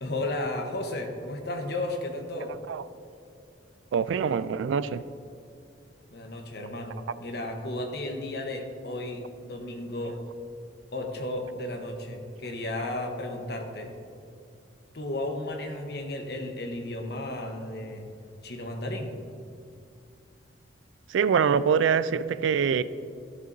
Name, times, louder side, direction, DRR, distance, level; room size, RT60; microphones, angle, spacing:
voice 1, 0.0-2.5 6.1-10.2 10.9-13.9 14.9-18.1 18.4-19.1, left 1 dB, 60° left, 3 dB, 1.0 m, -34 dB
voice 2, 3.9-5.0 21.1-22.8, right 7 dB, 90° right, 15 dB, 0.3 m, -24 dB
13.0 x 7.6 x 2.7 m, 2.5 s
head